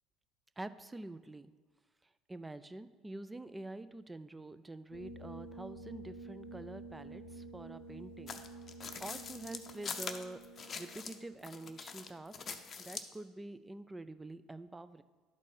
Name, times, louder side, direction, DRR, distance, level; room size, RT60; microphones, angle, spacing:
voice 1, 0.6-1.5 2.3-8.4 9.0-10.4 10.8-15.0, right 2 dB, 15° right, 12 dB, 0.4 m, -47 dB
sound 1, 4.9-12.4, right 3 dB, 80° left, 0.7 m, -50 dB
sound 2, 8.3-11.2 11.4-13.1, left 5 dB, 40° left, 0.7 m, -43 dB
11.0 x 4.2 x 4.9 m, 1.4 s
hypercardioid pair, 70°, 0 cm